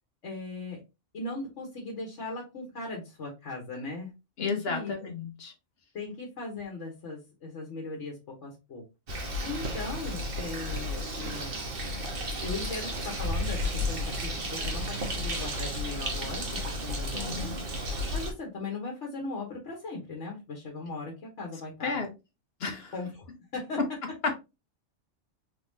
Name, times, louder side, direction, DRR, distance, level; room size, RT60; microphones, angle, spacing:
voice 1, 0.2-0.8 1.1-4.1 4.4-5.1 5.9-8.9 9.4-11.6 12.4-17.5 18.1-22.0 22.9-23.8, left 3 dB, 75° left, 1.5 m, -38 dB
voice 2, 4.4-5.5 17.1-17.6 21.8-22.1 22.6-22.9, left 4 dB, 60° left, 1.1 m, -33 dB
Bird, 9.1-18.3, equal, 50° right, 1.2 m, -33 dB
4.0 x 3.6 x 2.7 m
omnidirectional pair, 1.2 m